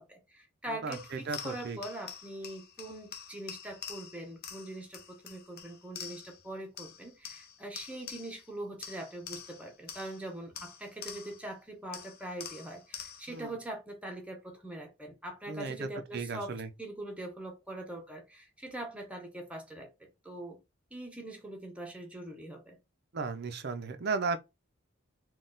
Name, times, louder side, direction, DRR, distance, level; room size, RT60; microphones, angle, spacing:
voice 1, 0.0-19.9 20.2-20.6 20.9-22.8, right 1 dB, 5° right, 0.8 m, -42 dB
voice 2, 0.8-1.8 13.3-13.5 15.5-16.7 23.1-24.4, right 4 dB, 50° right, 0.5 m, -35 dB
sound 1, 0.9-6.5 6.8-8.5 8.8-11.5 11.9-13.4, left 7 dB, 45° left, 0.7 m, -46 dB
4.0 x 2.3 x 3.8 m
head